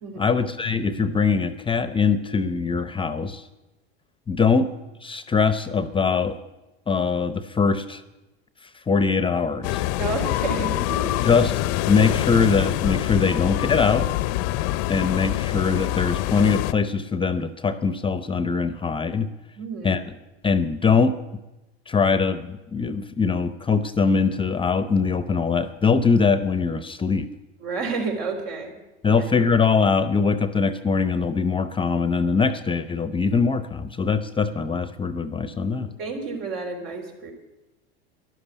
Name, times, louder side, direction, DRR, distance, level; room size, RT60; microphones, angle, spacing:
voice 1, 0.2-3.4 4.3-4.7 5.0-6.4 6.9-8.0 8.9-9.8 11.2-11.5 11.9-14.1 14.9-19.3 19.8-20.1 20.4-21.1 21.9-27.3 29.0-35.9, left 5 dB, 15° left, 12 dB, 0.7 m, -22 dB
sound 1, 9.6-16.7, left 15 dB, 60° left, 0.6 m, -25 dB
voice 2, 10.0-11.1 19.6-20.0 27.6-29.2 36.0-37.3, right 4 dB, 70° right, 2 dB, 4.0 m, -31 dB
12.0 x 11.5 x 8.2 m, 1.0 s
hypercardioid pair, 100°, 31 cm